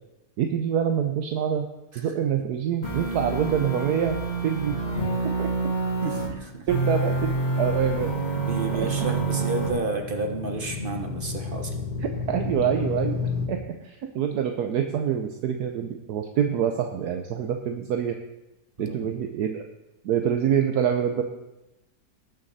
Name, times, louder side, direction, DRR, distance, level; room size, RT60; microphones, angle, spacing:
voice 1, 0.4-1.7 1.9-4.2 4.4-5.5 6.7-8.1 8.7-8.9 12.3-13.2 13.5-18.2 18.8-19.6 20.0-21.2, right 8 dB, 75° right, 5 dB, 1.3 m, -26 dB
sound 1, 2.8-6.3 6.7-9.7, right 3 dB, 60° left, 3.0 m, -27 dB
voice 2, 6.0-6.7 8.3-11.9 18.8-19.1, right 3 dB, 35° right, 4 dB, 1.2 m, -31 dB
sound 2, 7.7-13.5, left 5 dB, 80° left, 1.8 m, -33 dB
19.0 x 6.5 x 4.1 m, 0.94 s
omnidirectional pair, 1.7 m